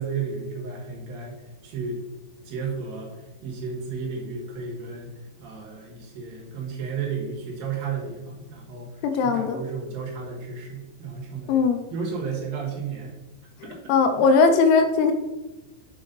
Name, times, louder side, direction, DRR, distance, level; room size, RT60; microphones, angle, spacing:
voice 1, 0.0-2.0 2.4-3.2 3.4-5.1 5.4-11.7 11.9-13.1 13.6-13.7 14.1-14.2, right 5 dB, 60° right, -1 dB, 2.9 m, -33 dB
voice 2, 9.0-9.6 11.5-11.8 13.9-15.1, left 4 dB, 90° left, 6 dB, 3.0 m, -19 dB
7.2 x 4.9 x 5.2 m, 1.1 s
omnidirectional pair, 5.2 m